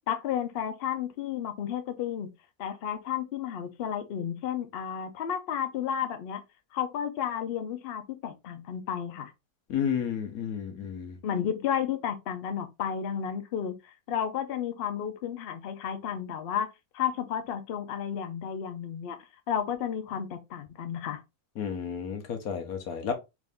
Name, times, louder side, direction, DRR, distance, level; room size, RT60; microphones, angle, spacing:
voice 1, 0.1-2.3 2.6-6.4 6.7-9.3 11.2-13.8 14.1-16.7 16.9-19.2 19.5-21.2, left 9 dB, 55° left, 0.7 m, -32 dB
voice 2, 9.7-11.2 21.6-23.1, left 7 dB, 80° left, 1.3 m, -32 dB
3.7 x 2.6 x 3.4 m
omnidirectional pair, 1.5 m